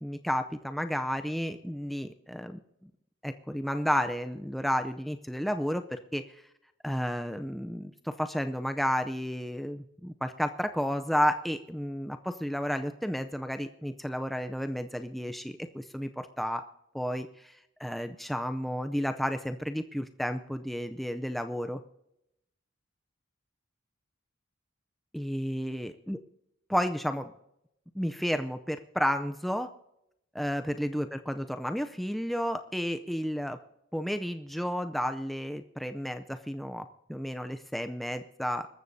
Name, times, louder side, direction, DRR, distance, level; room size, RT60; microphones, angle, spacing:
voice 1, 0.0-2.9 3.2-6.4 6.8-16.6 16.9-21.8 25.1-26.2 26.7-27.3 27.9-29.7 30.3-33.6 33.9-38.7, equal, ahead, 7 dB, 0.5 m, -32 dB
25.5 x 14.0 x 2.7 m, 0.80 s
head